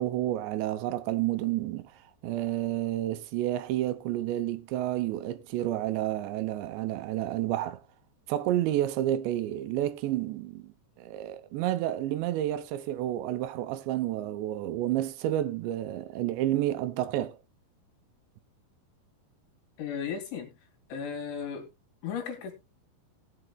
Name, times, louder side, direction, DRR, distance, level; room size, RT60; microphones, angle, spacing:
voice 1, 0.0-1.9 2.2-7.8 8.3-10.7 11.0-17.4, right 13 dB, 80° right, 2.8 m, -30 dB
voice 2, 19.8-20.5 20.9-21.7 22.0-22.5, left 7 dB, 80° left, 4.6 m, -35 dB
19.5 x 7.8 x 2.3 m
omnidirectional pair, 5.3 m